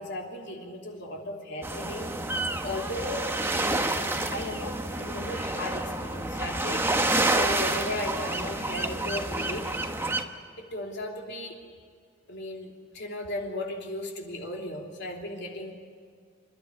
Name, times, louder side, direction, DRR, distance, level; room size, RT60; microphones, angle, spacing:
voice 1, 0.0-2.1 2.6-6.9 7.3-9.7 10.6-11.6 12.3-15.7, left 1 dB, 60° left, 0 dB, 3.2 m, -36 dB
sound 1, 1.6-10.2, right 2 dB, 10° right, 1.1 m, -29 dB
27.0 x 12.0 x 10.0 m, 2.1 s
head